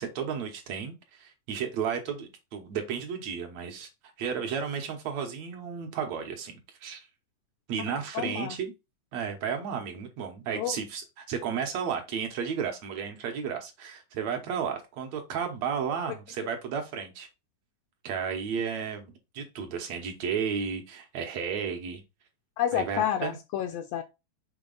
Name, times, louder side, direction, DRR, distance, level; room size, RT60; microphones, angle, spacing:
voice 1, 0.0-3.9 4.2-7.1 7.7-8.7 9.1-17.3 18.0-22.0 22.7-23.4, right 7 dB, 70° right, 2.1 m, -33 dB
voice 2, 8.1-8.6 10.6-10.7 22.6-24.0, left 10 dB, 75° left, 1.5 m, -29 dB
6.2 x 4.0 x 3.9 m
omnidirectional pair, 3.5 m